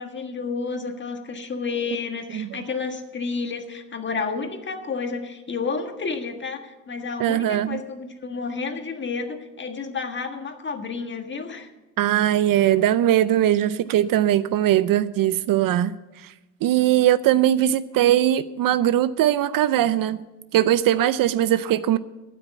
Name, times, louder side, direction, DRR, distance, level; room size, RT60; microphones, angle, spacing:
voice 1, 0.0-11.7, left 4 dB, 30° left, 5 dB, 1.6 m, -31 dB
voice 2, 7.2-7.8 12.0-16.3 16.6-20.2 20.5-22.0, right 12 dB, 55° right, 15 dB, 0.6 m, -20 dB
12.5 x 9.1 x 7.1 m, 1.1 s
cardioid pair, 120°, 40 cm